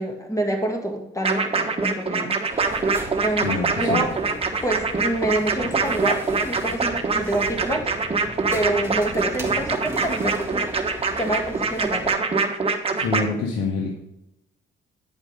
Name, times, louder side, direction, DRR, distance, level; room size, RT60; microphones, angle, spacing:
voice 1, 0.0-2.9 3.2-4.1 4.6-8.0 8.5-10.8 11.2-12.1, right 1 dB, 15° left, 3 dB, 2.0 m, -27 dB
sound 1, 1.2-13.2, right 4 dB, 30° right, 1.2 m, -24 dB
sound 2, 2.5-12.1, right 2 dB, 10° right, 1.8 m, -37 dB
voice 2, 3.4-4.0 13.0-14.0, left 4 dB, 90° left, 1 dB, 1.2 m, -26 dB
9.6 x 5.2 x 5.0 m, 0.88 s
cardioid pair, 90°, 20 cm